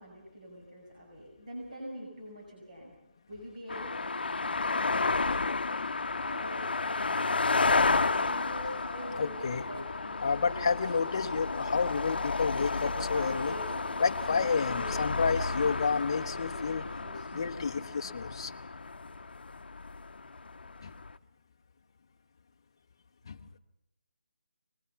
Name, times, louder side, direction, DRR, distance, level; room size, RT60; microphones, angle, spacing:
voice 1, 0.0-2.9 3.3-4.2 5.1-5.7 6.1-10.6 10.9-11.6 12.8-17.7, equal, 45° right, -2 dB, 6.0 m, -45 dB
sound 1, 3.7-21.2, left 3 dB, 65° left, 0.7 m, -32 dB
voice 2, 9.2-9.6 10.2-13.5 14.0-16.9 17.3-18.5 20.8-20.9 23.3-23.4, left 5 dB, 25° left, 6 dB, 0.8 m, -30 dB
25.0 x 20.5 x 5.7 m, 0.90 s
hypercardioid pair, 180°, 6 cm